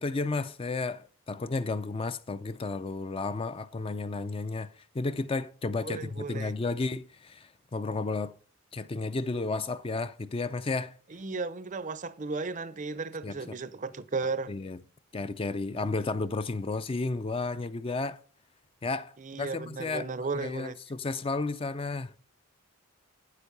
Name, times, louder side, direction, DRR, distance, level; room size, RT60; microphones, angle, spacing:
voice 1, 0.0-8.4 8.7-10.9 13.2-13.6 14.5-14.8 15.1-18.2 18.8-20.1 20.3-22.2, left 3 dB, 25° left, 0.4 m, -32 dB
voice 2, 5.8-6.5 11.1-14.5 19.2-20.8, right 4 dB, 35° right, 0.5 m, -35 dB
9.0 x 8.2 x 5.4 m
head